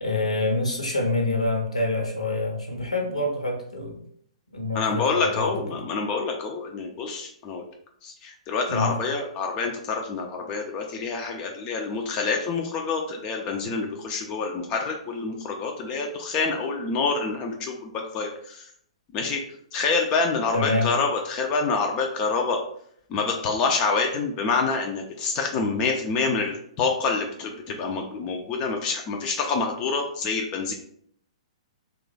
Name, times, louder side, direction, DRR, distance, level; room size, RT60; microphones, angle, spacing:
voice 1, 0.0-4.0 4.5-5.8 8.7-9.0 20.5-20.9, left 2 dB, 75° left, 2 dB, 0.8 m, -26 dB
voice 2, 4.7-7.6 8.0-18.7 19.1-19.4 19.7-22.6 23.1-30.7, left 4 dB, 25° left, 2 dB, 0.4 m, -27 dB
3.0 x 2.3 x 3.7 m, 0.65 s
figure-of-eight pair, 115°, 3 cm